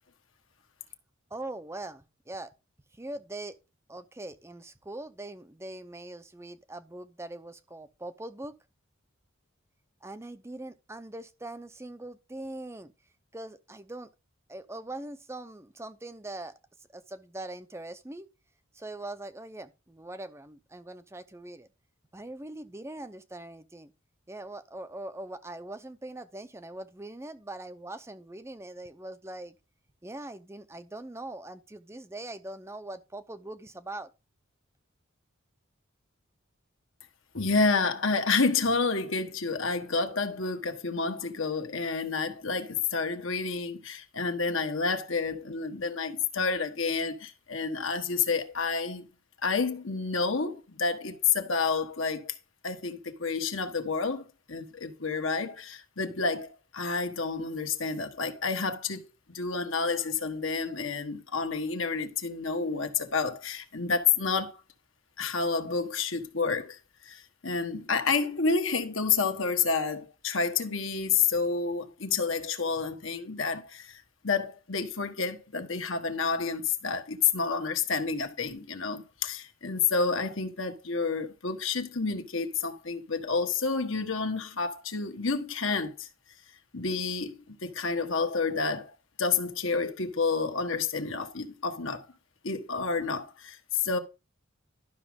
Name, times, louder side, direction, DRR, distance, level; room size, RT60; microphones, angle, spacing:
voice 1, 1.3-2.5 2.9-3.6 3.9-8.5 10.0-12.9 13.3-14.1 14.5-16.5 16.9-18.3 18.7-21.7 22.1-23.9 24.3-29.6 30.0-34.1, right 2 dB, 15° right, 0.6 m, -42 dB
voice 2, 37.3-49.1 49.4-52.4 52.6-59.0 59.3-64.6 65.2-86.1 86.7-92.1 92.4-94.0, left 4 dB, 70° left, 1.5 m, -29 dB
12.0 x 6.2 x 3.6 m
head